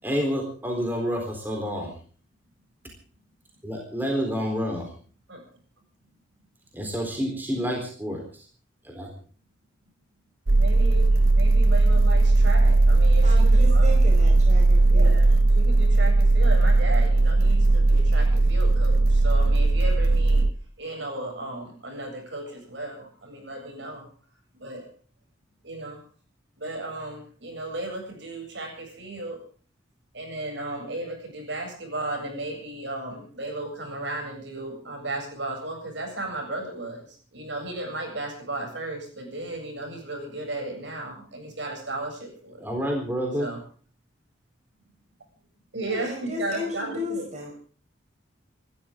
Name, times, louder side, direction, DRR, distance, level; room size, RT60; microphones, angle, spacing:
voice 1, 0.0-1.9 3.6-4.9 6.7-8.5 8.8-9.1 42.6-43.5, equal, 10° right, 1 dB, 3.9 m, -29 dB
sound 1, 10.5-20.5, right 2 dB, 90° right, 1.0 m, -18 dB
voice 2, 10.6-14.0 14.9-15.3 15.5-20.5 20.8-24.1 24.6-24.9 25.6-26.0 26.6-29.4 30.1-42.6 43.4-43.6 45.7-47.3, right 2 dB, 65° right, 1 dB, 7.9 m, -35 dB
voice 3, 13.2-15.1 45.8-47.5, left 1 dB, 35° right, 0 dB, 5.1 m, -34 dB
28.0 x 13.0 x 3.8 m, 0.43 s
head